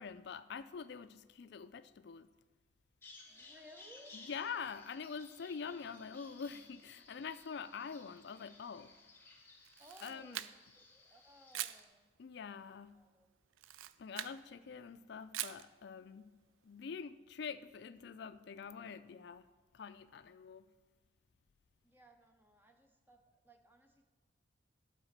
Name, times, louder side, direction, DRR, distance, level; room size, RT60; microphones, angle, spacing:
voice 1, 0.0-2.3 4.1-9.0 10.0-10.4 12.2-13.0 14.0-16.3 16.6-19.4 19.7-20.7, left 6 dB, 55° left, 0.4 m, -45 dB
Bird vocalization bird call bird song, 3.0-11.8, left 3 dB, 10° left, 1.0 m, -59 dB
Harp, 3.2-8.7, right 1 dB, 50° right, 2.5 m, -70 dB
voice 2, 3.3-4.2 9.8-12.1 12.9-13.4 21.8-24.0, equal, 10° right, 0.6 m, -61 dB
Camera, 9.6-10.8 11.5-11.8 13.5-14.4 15.3-15.7, right 13 dB, 85° right, 0.3 m, -43 dB
11.5 x 4.1 x 6.5 m
head